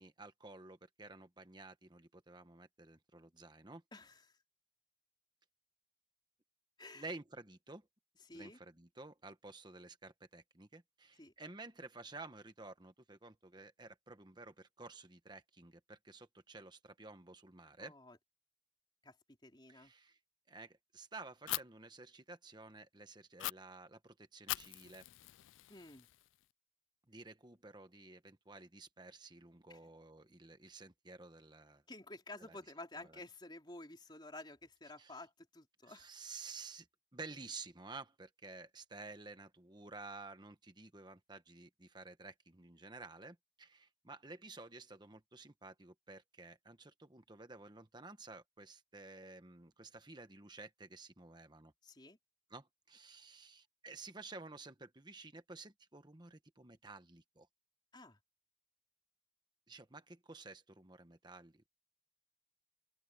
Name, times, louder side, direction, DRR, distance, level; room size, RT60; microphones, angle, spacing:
voice 1, 0.0-3.8 6.9-7.9 8.3-17.9 19.7-20.2 20.5-25.0 27.1-31.8 32.4-32.6 33.1-33.2 35.0-35.2 35.8-36.9 37.1-51.7 52.5-57.5 59.7-61.7, right 3 dB, 25° right, 1.2 m, -52 dB
voice 2, 3.9-4.4 6.8-7.0 8.2-8.6 11.2-11.3 17.8-18.2 19.0-19.2 19.4-19.9 25.7-26.1 29.7-29.9 31.9-36.1 51.8-52.2 57.9-58.2, left 2 dB, 25° left, 3.9 m, -52 dB
Fire, 21.5-21.6 23.4-23.5 24.5-26.4, left 16 dB, 85° left, 0.3 m, -42 dB
open air
head